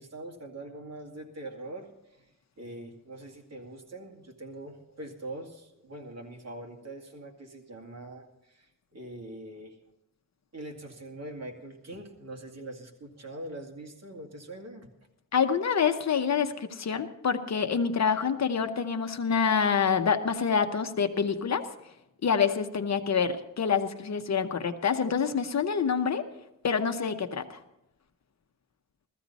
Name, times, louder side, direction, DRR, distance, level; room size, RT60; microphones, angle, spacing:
voice 1, 0.0-1.9 2.2-2.3 2.6-9.8 10.5-14.9, right 1 dB, 50° right, 1 dB, 2.2 m, -43 dB
voice 2, 15.3-21.7 22.2-26.2 26.6-27.6, left 6 dB, 50° left, 8 dB, 0.9 m, -27 dB
15.5 x 14.5 x 4.1 m, 0.85 s
wide cardioid pair, 145°, 34 cm